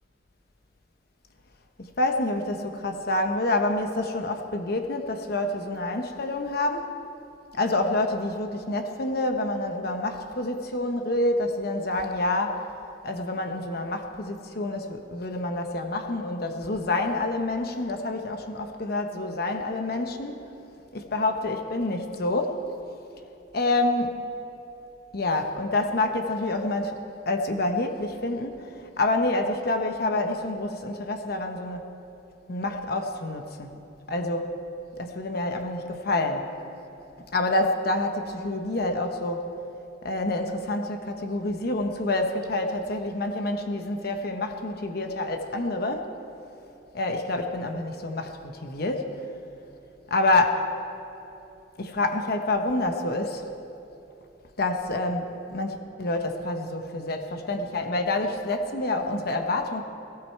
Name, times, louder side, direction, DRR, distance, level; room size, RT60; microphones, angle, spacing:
voice 1, 1.8-6.9 7.5-12.7 13.0-20.4 20.9-22.6 23.5-24.2 25.1-27.0 27.3-31.9 32.5-33.8 34.1-34.5 35.0-36.5 37.2-39.5 40.0-46.1 46.9-49.2 50.1-50.6 51.8-53.4 54.6-59.8, left 2 dB, 60° left, 5 dB, 0.9 m, -27 dB
18.0 x 16.5 x 4.6 m, 2.9 s
head